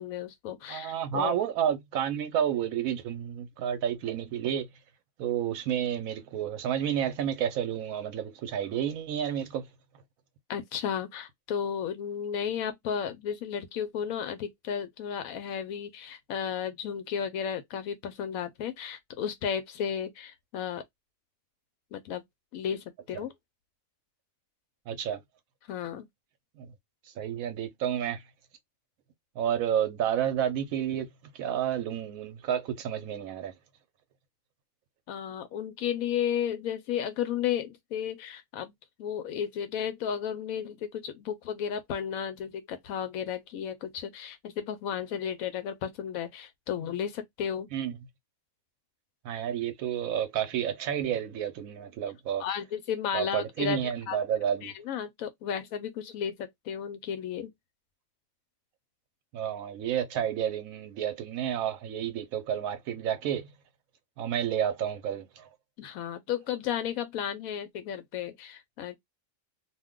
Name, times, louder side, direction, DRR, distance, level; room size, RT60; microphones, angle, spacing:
voice 1, 0.0-1.3 10.5-20.8 21.9-22.2 22.5-23.3 25.7-26.1 35.1-38.7 39.0-47.7 52.4-54.2 54.6-57.5 65.8-69.0, left 8 dB, 85° left, 1.0 m, -33 dB
voice 2, 0.7-4.7 5.2-9.7 24.9-25.2 26.6-26.7 27.2-28.2 29.4-31.1 31.3-33.5 47.7-47.9 49.2-52.4 53.1-54.7 59.3-63.5 64.2-65.5, right 9 dB, 85° right, 1.0 m, -30 dB
2.5 x 2.2 x 3.6 m
omnidirectional pair, 1.4 m